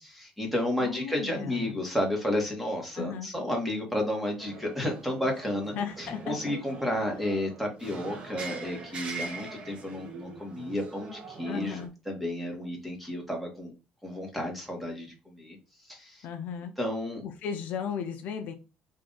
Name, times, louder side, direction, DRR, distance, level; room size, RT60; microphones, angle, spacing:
voice 1, 0.0-13.7 14.0-15.6 15.9-16.2 16.8-17.2, left 1 dB, ahead, 1.2 m, -32 dB
voice 2, 0.8-1.8 2.9-3.3 5.8-6.6 11.5-11.9 16.2-16.8 17.2-18.5, left 7 dB, 60° left, 0.6 m, -35 dB
sound 1, 4.4-11.9, right 4 dB, 35° right, 0.8 m, -42 dB
3.6 x 2.6 x 3.9 m
cardioid pair, 160°, 3 cm